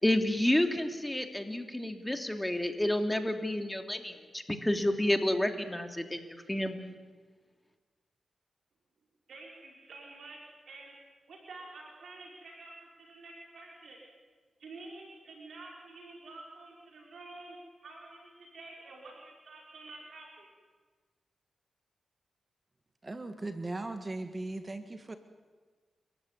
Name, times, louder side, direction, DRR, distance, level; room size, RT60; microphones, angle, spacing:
voice 1, 0.0-6.8, left 1 dB, 10° left, 6 dB, 3.0 m, -30 dB
voice 2, 9.3-10.4 10.7-11.0 11.3-14.0 14.6-17.6 17.8-20.5, right 2 dB, 75° right, -1 dB, 5.5 m, -49 dB
voice 3, 23.0-25.2, right 2 dB, 30° right, 8 dB, 1.8 m, -38 dB
29.0 x 15.0 x 9.7 m, 1.4 s
cardioid pair, 60°, 0 cm